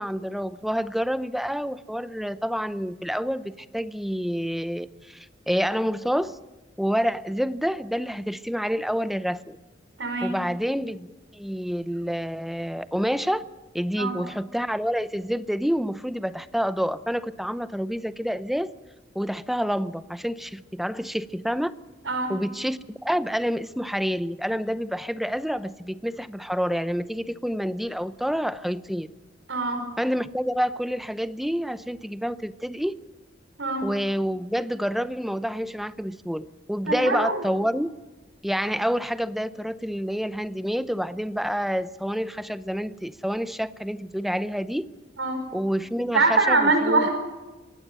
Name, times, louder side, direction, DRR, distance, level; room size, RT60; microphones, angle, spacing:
voice 1, 0.0-6.4 6.8-9.6 10.2-13.4 13.7-18.7 19.1-21.8 22.3-29.1 30.0-33.0 33.8-37.9 38.4-44.9 45.5-47.1, equal, ahead, 13 dB, 0.7 m, -28 dB
voice 2, 10.0-10.4 14.0-14.2 22.0-22.3 29.5-29.8 33.6-33.9 36.9-37.4 45.2-45.4 46.1-47.1, right 3 dB, 80° right, 5 dB, 5.1 m, -23 dB
24.0 x 17.5 x 6.8 m, 1.2 s
head